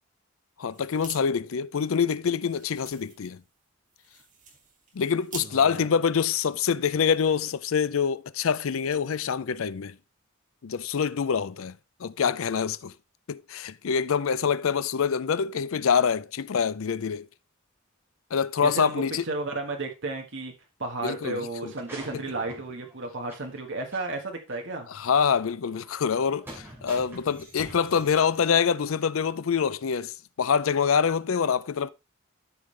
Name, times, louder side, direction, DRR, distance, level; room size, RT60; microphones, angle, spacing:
voice 1, 0.6-3.4 4.9-10.0 10.6-12.9 13.3-17.3 18.3-19.2 21.0-21.7 24.9-31.9, left 6 dB, 75° left, 0.5 m, -25 dB
sound 1, 0.7-1.2 1.5-1.6 1.9-5.5, right 5 dB, 40° right, 2.3 m, -45 dB
voice 2, 5.4-5.9 18.6-20.5 20.8-24.9, right 2 dB, 60° right, 1.4 m, -33 dB
sound 2, 21.6-23.6 23.9-24.0 24.5-24.6 25.7-28.7, right 1 dB, 10° right, 2.7 m, -46 dB
13.0 x 5.5 x 3.3 m
head